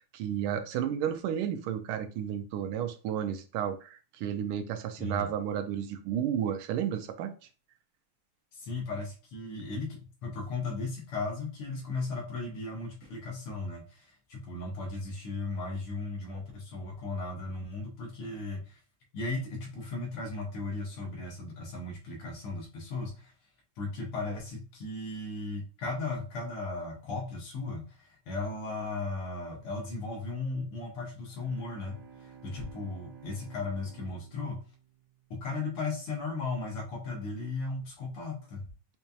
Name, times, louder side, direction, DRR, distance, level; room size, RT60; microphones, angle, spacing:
voice 1, 0.1-7.3, right 9 dB, 80° right, 9 dB, 1.4 m, -32 dB
voice 2, 5.0-5.3 8.5-18.8 19.1-23.3 23.8-34.6 35.3-38.7, left 3 dB, 80° left, 0 dB, 2.1 m, -36 dB
sound 1, 31.2-35.2, right 6 dB, 60° right, 2.0 m, -53 dB
5.2 x 2.7 x 2.3 m, 0.34 s
omnidirectional pair, 2.4 m